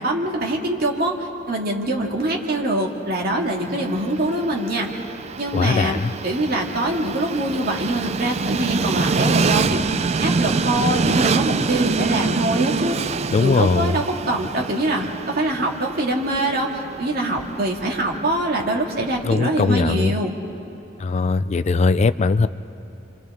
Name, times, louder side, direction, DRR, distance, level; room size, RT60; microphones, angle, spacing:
voice 1, 0.0-5.0 5.4-9.8 10.2-13.0 13.4-20.3, right 1 dB, 55° right, 0 dB, 2.1 m, -24 dB
Train, 3.4-19.5, right 4 dB, 35° right, 0.4 m, -26 dB
voice 2, 5.5-6.1 13.3-14.0 19.2-20.1 21.0-22.5, left 4 dB, 35° left, 13 dB, 0.4 m, -20 dB
29.5 x 25.5 x 3.6 m, 2.9 s
head